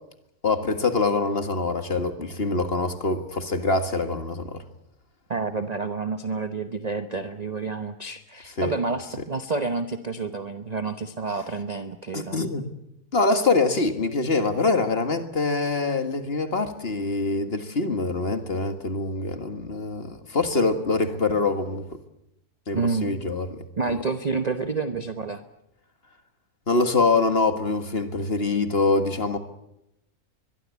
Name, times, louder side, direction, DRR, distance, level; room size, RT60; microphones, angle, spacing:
voice 1, 0.4-4.6 8.6-8.7 12.1-12.7 13.1-21.9 22.7-23.6 23.9-24.0 26.7-29.4, left 3 dB, 40° left, 1.9 m, -24 dB
voice 2, 5.3-12.4 22.7-23.1 23.8-25.4, right 4 dB, 30° right, 1.0 m, -29 dB
22.5 x 22.5 x 8.4 m
omnidirectional pair, 1.6 m